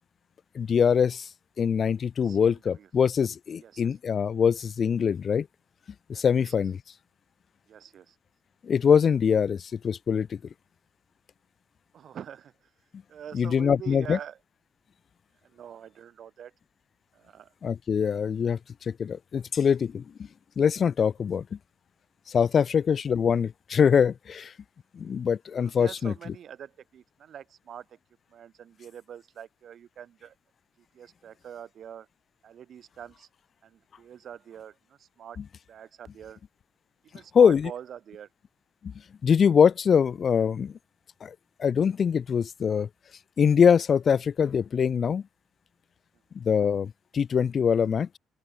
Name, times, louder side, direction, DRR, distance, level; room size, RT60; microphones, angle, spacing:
voice 1, 0.5-1.3 1.6-5.5 6.1-6.8 8.6-10.4 13.3-14.2 17.6-20.0 20.6-21.4 22.3-24.5 24.9-26.1 37.3-37.7 38.8-38.9 39.2-40.8 41.2-41.3 41.6-42.9 43.4-45.2 46.3-48.2, left 7 dB, 50° left, 0.5 m, -23 dB
voice 2, 2.2-2.9 3.6-3.9 6.1-6.5 7.7-8.2 11.9-12.7 13.1-14.4 15.4-16.5 17.1-17.5 25.6-28.0 28.3-30.4 30.8-32.1 32.4-33.3 33.6-35.4 35.7-36.4 37.0-38.3, right 9 dB, 60° right, 2.4 m, -45 dB
open air
cardioid pair, 90°, 0 cm